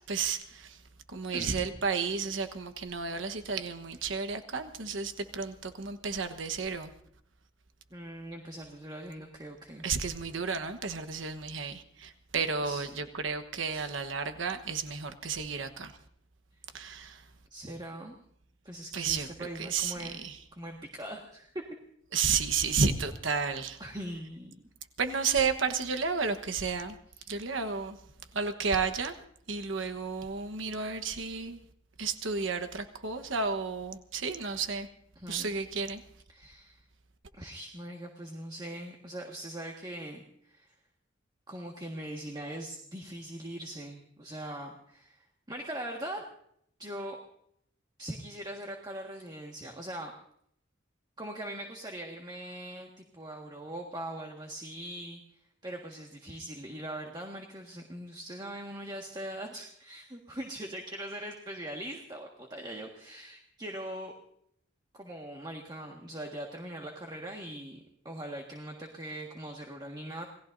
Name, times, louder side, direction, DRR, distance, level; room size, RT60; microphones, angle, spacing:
voice 1, 0.1-0.8 1.1-6.9 9.8-15.9 16.7-17.3 18.9-20.4 22.1-23.8 25.0-27.0 27.3-28.0 28.3-29.2 29.5-31.6 32.0-34.9 35.3-36.0, right 5 dB, 70° right, 8 dB, 1.2 m, -32 dB
voice 2, 1.3-1.7 7.9-9.8 12.3-12.8 13.7-13.9 17.5-18.2 18.6-20.3 20.6-21.6 23.8-24.5 27.2-27.3 35.1-35.5 36.3-36.8 37.4-40.7 41.5-46.2 46.8-47.2 48.0-50.1 51.2-55.2 55.6-64.1 64.9-70.3, right 1 dB, 20° right, 1 dB, 1.7 m, -41 dB
28.5 x 19.0 x 2.7 m, 0.69 s
head